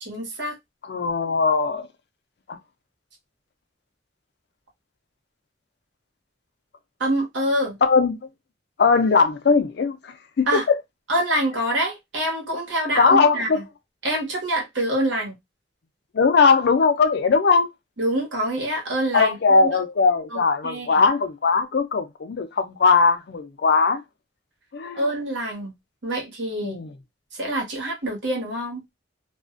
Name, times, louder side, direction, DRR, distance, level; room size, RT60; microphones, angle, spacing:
voice 1, 0.0-0.5 7.0-7.8 10.5-10.6 11.1-13.6 14.0-15.3 18.0-19.6 20.3-21.0 24.9-25.7 26.0-26.8 27.3-28.8, right 1 dB, 80° right, 1.1 m, -26 dB
voice 2, 0.8-1.9 2.5-2.6 7.8-8.3 8.8-10.0 10.4-10.8 13.0-13.6 16.1-17.7 19.1-24.0 24.7-25.0 26.6-26.9, left 4 dB, 65° left, 0.5 m, -19 dB
2.4 x 2.1 x 2.4 m
head